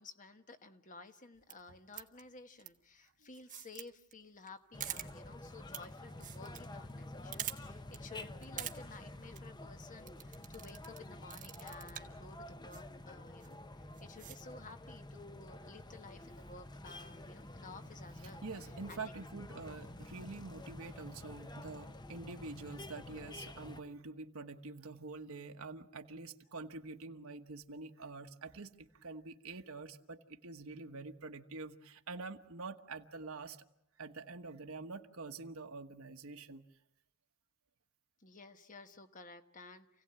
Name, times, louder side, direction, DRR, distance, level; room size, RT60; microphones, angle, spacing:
voice 1, 0.0-18.4 18.9-19.0 38.2-40.0, left 3 dB, 35° left, 8 dB, 1.3 m, -54 dB
sound 1, 1.4-1.5 1.9-2.2 2.6-2.7 3.3-3.8 4.1-4.2 4.4-4.5 4.8-5.1 5.7-5.8 6.1-6.6 6.9-7.0 7.3-7.6 7.9-8.0 8.4-8.7 9.2-9.4 10.1-11.0 11.3-12.1 12.7-12.8 13.4-13.5 13.9-14.4, right 11 dB, 35° right, 1.6 m, -43 dB
sound 2, 4.7-23.8, left 1 dB, 20° left, 0.9 m, -49 dB
voice 2, 18.4-33.7 34.0-36.6, right 3 dB, 70° right, 5 dB, 1.3 m, -46 dB
28.5 x 17.0 x 8.8 m, 0.80 s
head